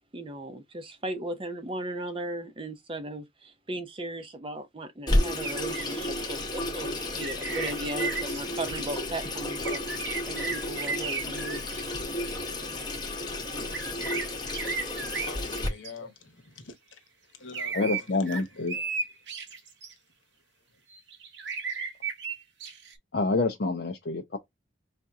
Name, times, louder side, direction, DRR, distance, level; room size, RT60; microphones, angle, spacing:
voice 1, 0.1-9.9 10.3-11.6, right 1 dB, 25° right, 0.5 m, -37 dB
Water tap faucet / Sink (filling or washing), 5.1-15.7, left 1 dB, 20° left, 0.8 m, -32 dB
sound 1, 5.4-6.2 7.2-8.4 8.7-9.0 9.6-12.5 13.7-15.9 17.5-19.9 20.9-22.9, right 5 dB, 65° right, 0.7 m, -35 dB
voice 2, 14.9-18.9 19.2-19.6 20.3-20.8, left 4 dB, 80° left, 1.1 m, -47 dB
voice 3, 17.7-18.7 23.1-24.4, left 3 dB, 55° left, 0.5 m, -27 dB
4.9 x 2.7 x 2.3 m
head